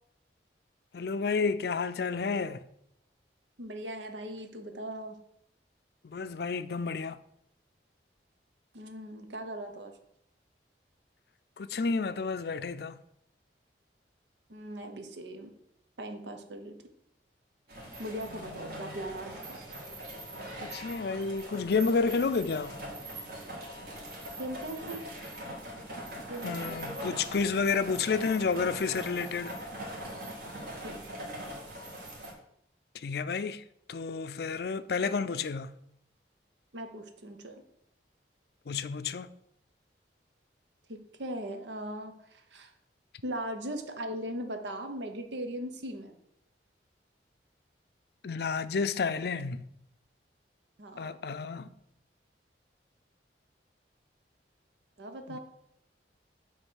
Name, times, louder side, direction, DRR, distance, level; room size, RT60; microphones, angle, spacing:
voice 1, 0.9-2.6 6.0-7.2 11.6-13.0 18.7-19.0 20.6-22.7 26.4-29.5 32.9-35.7 38.7-39.3 48.2-49.7 51.0-51.7 55.3-55.4, left 4 dB, 60° left, 0.4 m, -31 dB
voice 2, 3.6-5.2 8.7-9.9 14.5-15.5 16.0-16.7 18.0-19.6 24.4-25.1 26.3-26.8 30.8-31.3 36.7-37.6 40.9-42.7 43.2-46.1 50.8-51.2 55.0-55.4, right 1 dB, 85° right, 1.0 m, -39 dB
sound 1, 17.7-32.3, right 1 dB, 60° right, 2.2 m, -41 dB
8.8 x 3.2 x 6.3 m
head